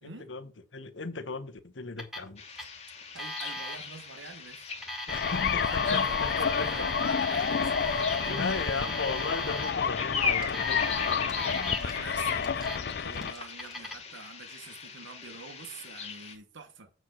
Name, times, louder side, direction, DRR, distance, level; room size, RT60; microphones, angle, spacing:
voice 1, 0.0-2.4 5.1-6.7 7.4-7.7 7.9-11.3, left 4 dB, 75° left, 1.0 m, -37 dB
Alarm, 2.0-2.3 2.6-2.7 3.2-3.8 4.7-9.7 10.4-12.0 12.4-12.8 13.1-14.0, left 1 dB, ahead, 1.8 m, -37 dB
sound 1, 2.4-16.3, left 5 dB, 35° left, 1.7 m, -38 dB
voice 2, 3.1-4.7 5.5-9.0 11.8-16.9, right 4 dB, 75° right, 1.2 m, -47 dB
sound 2, 5.1-13.3, left 6 dB, 55° left, 0.4 m, -30 dB
8.0 x 4.6 x 6.2 m
head